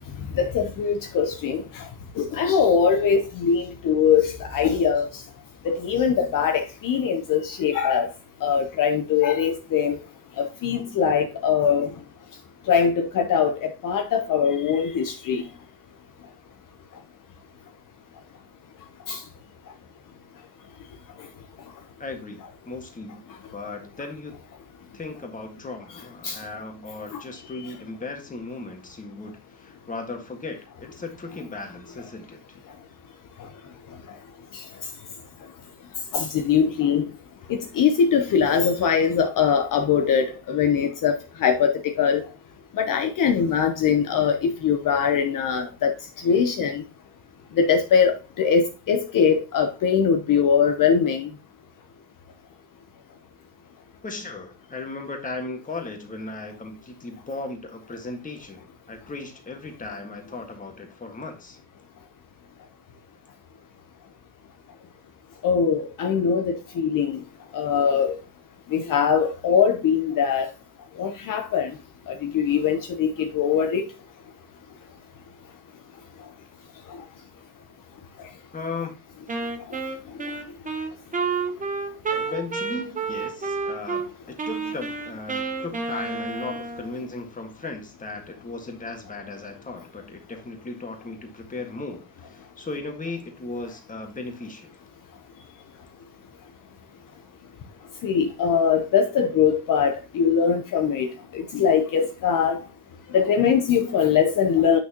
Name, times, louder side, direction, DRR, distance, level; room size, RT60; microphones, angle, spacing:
voice 1, 0.4-1.8 2.2-5.1 5.6-8.1 8.4-10.0 10.4-11.9 12.7-15.4 19.1-19.2 26.2-26.4 36.1-37.0 37.5-42.2 42.8-45.9 46.2-46.8 47.6-51.3 65.4-67.2 67.5-68.2 68.7-70.5 71.0-71.7 72.1-73.8 98.0-101.1 101.3-102.6 103.1-104.8, left 7 dB, 55° left, 0.8 m, -22 dB
voice 2, 22.0-23.2 23.5-24.4 24.9-32.4 54.0-61.6 78.5-78.9 82.1-94.7, left 3 dB, 20° left, 1.6 m, -36 dB
Wind instrument woodwind instrument, 79.3-84.1 84.4-87.0, right 4 dB, 20° right, 1.0 m, -30 dB
9.1 x 6.1 x 2.9 m
cardioid pair, 165°, 38 cm